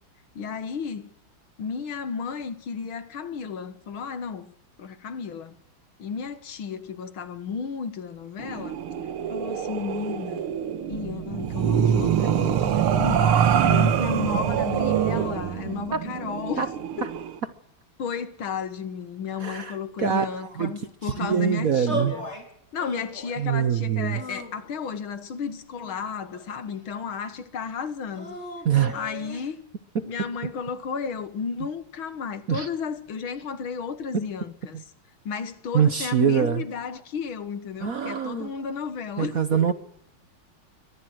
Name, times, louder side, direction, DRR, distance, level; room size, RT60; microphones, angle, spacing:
voice 1, 0.4-1.2 1.6-4.5 4.8-5.6 6.0-8.8 9.3-10.4 10.9-16.7 17.0-17.1 18.0-22.4 22.7-28.4 28.9-29.6 30.1-34.8 35.3-39.7, left 6 dB, 70° left, 2.3 m, -33 dB
sound 1, 8.4-17.3, right 9 dB, 85° right, 2.1 m, -24 dB
voice 2, 19.4-22.1 23.4-24.2 28.6-29.0 29.9-30.1 32.5-32.7 34.1-34.2 34.7-34.8 35.7-36.6 37.8-38.5 39.2-39.7, right 8 dB, 55° right, 1.1 m, -24 dB
sound 2, 21.9-22.4 22.8-23.5 24.1-25.0 25.8-26.8 28.1-29.5, equal, 30° left, 5.2 m, -36 dB
23.5 x 18.5 x 6.4 m
omnidirectional pair, 2.3 m